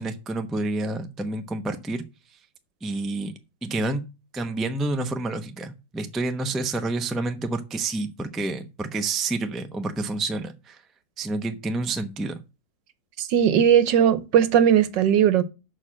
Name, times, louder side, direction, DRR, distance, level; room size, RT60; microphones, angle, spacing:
voice 1, 0.0-2.0 2.8-3.3 3.6-4.0 4.3-10.8 11.2-12.4, right 2 dB, ahead, 0.4 m, -29 dB
voice 2, 13.2-15.4, right 9 dB, 85° right, 1.6 m, -18 dB
6.6 x 6.2 x 7.5 m
omnidirectional pair, 1.9 m